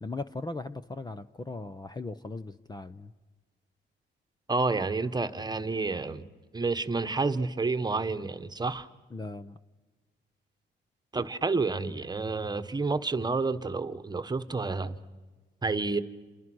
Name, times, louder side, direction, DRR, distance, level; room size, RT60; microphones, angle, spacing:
voice 1, 0.0-3.1 9.1-9.6, left 3 dB, 20° left, 12 dB, 0.9 m, -38 dB
voice 2, 4.5-6.3 6.5-8.9 11.1-15.0 15.6-16.0, right 3 dB, 20° right, 10 dB, 1.4 m, -29 dB
29.0 x 28.0 x 6.3 m, 1.3 s
cardioid pair, 90°, 20 cm